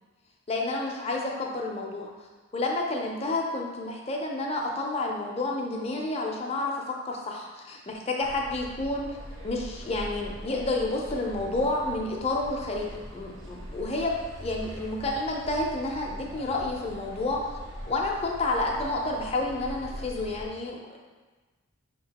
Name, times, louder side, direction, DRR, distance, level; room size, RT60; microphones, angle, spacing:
voice 1, 0.5-2.1 2.5-9.1 9.4-12.9 13.1-14.1 14.4-17.6 17.9-21.0, left 2 dB, 30° left, 0 dB, 0.5 m, -30 dB
sound 1, 8.2-20.5, equal, 70° right, 0.9 m, -42 dB
6.0 x 2.9 x 2.8 m, 1.3 s
head